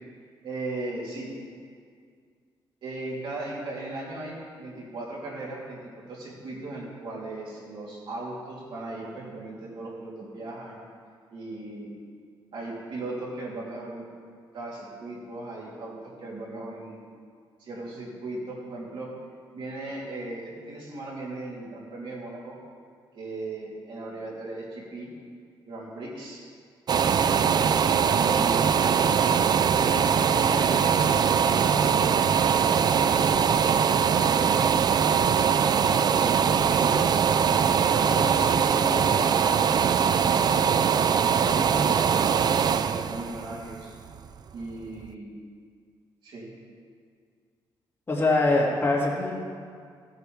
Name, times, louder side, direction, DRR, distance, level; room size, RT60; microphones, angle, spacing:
voice 1, 0.4-1.3 2.8-5.8 6.1-10.8 11.3-11.9 12.5-14.1 14.5-17.0 17.6-19.1 19.5-22.6 23.1-25.1 25.6-26.4 27.9-35.7 36.1-37.0 37.9-40.9 41.4-42.4 42.7-43.9 44.5-45.3 46.2-46.5, right 2 dB, 70° right, -5 dB, 3.3 m, -37 dB
sound 1, 26.9-44.6 45.0-45.1, right 7 dB, 50° right, 0.4 m, -22 dB
voice 2, 48.1-49.3, left 2 dB, 25° left, -4 dB, 2.5 m, -23 dB
17.0 x 9.3 x 3.5 m, 2.1 s
cardioid pair, 105°, 9 cm